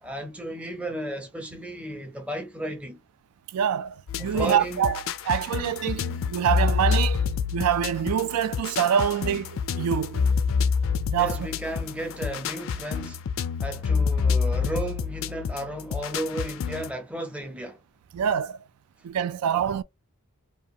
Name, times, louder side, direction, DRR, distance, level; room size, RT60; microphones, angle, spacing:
voice 1, 0.0-3.0 4.2-4.9 11.2-13.2 13.6-17.8, right 1 dB, 5° right, 0.5 m, -34 dB
voice 2, 3.5-7.2 7.5-10.3 11.1-11.5 18.1-18.7 19.0-19.8, right 8 dB, 90° right, 0.3 m, -26 dB
sound 1, 4.1-16.9, left 5 dB, 65° left, 0.3 m, -28 dB
2.8 x 2.2 x 2.4 m
head